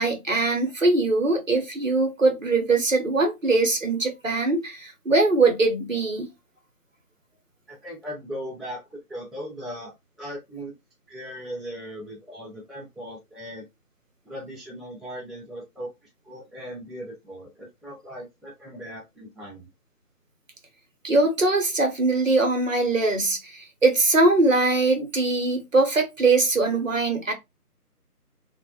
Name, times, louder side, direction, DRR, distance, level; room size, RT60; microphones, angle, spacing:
voice 1, 0.0-6.3 21.0-27.3, right 3 dB, 55° right, 0.8 m, -22 dB
voice 2, 7.7-9.9 10.2-10.7 11.1-13.6 14.2-15.9 16.2-19.7, equal, ahead, 0.5 m, -38 dB
2.3 x 2.1 x 2.7 m
figure-of-eight pair, 160°, 47 cm